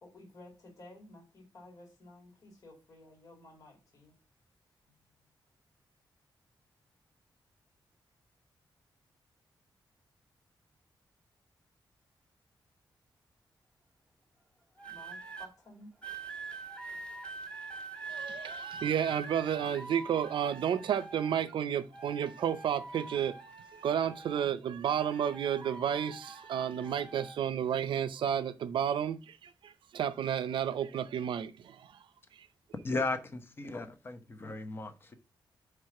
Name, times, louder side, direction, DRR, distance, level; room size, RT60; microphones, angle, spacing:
voice 1, 0.0-4.1 14.8-15.9, left 1 dB, 50° left, 2.1 m, -54 dB
sound 1, 14.8-15.5 16.0-21.5 21.9-24.5 24.8-27.4 28.1-28.4, right 3 dB, 10° left, 1.3 m, -45 dB
voice 2, 18.1-23.3 23.8-31.9, right 9 dB, 90° right, 0.5 m, -32 dB
voice 3, 32.8-35.1, left 3 dB, 30° left, 0.8 m, -36 dB
4.7 x 4.7 x 5.8 m
wide cardioid pair, 170°, 8 cm